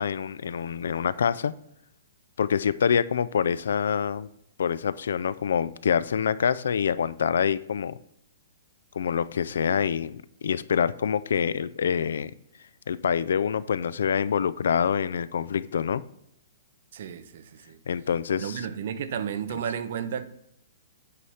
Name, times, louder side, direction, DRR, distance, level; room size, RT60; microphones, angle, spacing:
voice 1, 0.0-1.5 2.4-4.3 4.6-8.0 8.9-12.3 12.9-16.0 17.9-18.6 19.5-19.6, left 7 dB, 65° left, 0.3 m, -26 dB
voice 2, 16.9-17.8 18.4-20.2, right 8 dB, 40° right, 0.5 m, -32 dB
8.3 x 3.3 x 5.5 m
hypercardioid pair, 180°, 0 cm